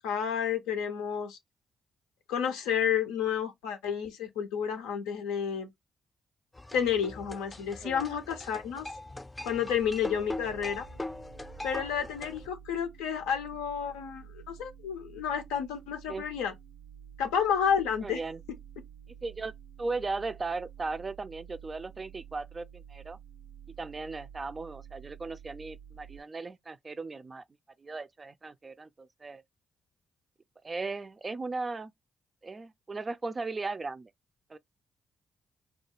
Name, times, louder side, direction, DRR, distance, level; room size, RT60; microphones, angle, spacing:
voice 1, 0.0-1.4 2.3-5.7 6.7-8.9 9.4-10.9 11.6-16.5 17.2-18.2, left 8 dB, 80° left, 0.5 m, -30 dB
sound 1, 6.5-12.5, left 2 dB, 25° left, 0.5 m, -41 dB
sound 2, 9.8-26.2, right 9 dB, 90° right, 0.5 m, -51 dB
voice 2, 18.0-18.4 19.2-19.5 19.8-23.2 23.7-27.4 27.8-29.4 30.6-31.9 32.4-34.1 34.5-34.6, right 3 dB, 35° right, 0.3 m, -37 dB
2.3 x 2.3 x 2.8 m
hypercardioid pair, 40°, 0 cm